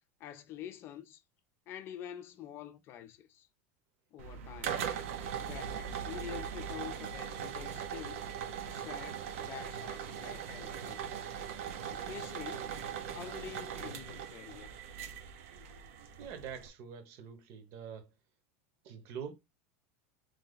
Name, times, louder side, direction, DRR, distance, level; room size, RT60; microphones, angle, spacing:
voice 1, 0.2-1.2 1.7-3.5 4.1-5.1 5.4-8.3 8.7-11.2 11.9-12.8 13.1-14.8, left 11 dB, 35° left, 0.5 m, -47 dB
sound 1, 4.2-16.7, right 8 dB, 85° right, 0.9 m, -40 dB
voice 2, 16.2-18.1 18.8-19.3, right 7 dB, 45° right, 1.0 m, -45 dB
3.3 x 2.8 x 3.9 m
supercardioid pair, 165°, 7 cm